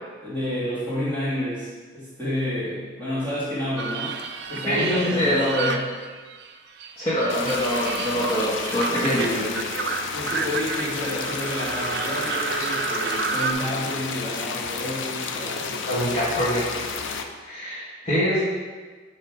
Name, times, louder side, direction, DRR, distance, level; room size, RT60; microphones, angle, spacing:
voice 1, 0.2-4.1 4.5-5.8 7.4-7.5 9.0-9.4 10.1-15.8, left 1 dB, 10° left, -11 dB, 1.9 m, -30 dB
sound 1, 3.8-6.5 6.8-13.5, right 5 dB, 65° right, 0.5 m, -31 dB
voice 2, 4.6-5.7 7.0-9.8 15.8-16.8 17.4-18.4, equal, 25° left, -11 dB, 1.5 m, -24 dB
sound 2, 7.3-17.2, left 5 dB, 85° left, 0.6 m, -31 dB
9.1 x 3.2 x 4.9 m, 1.4 s
head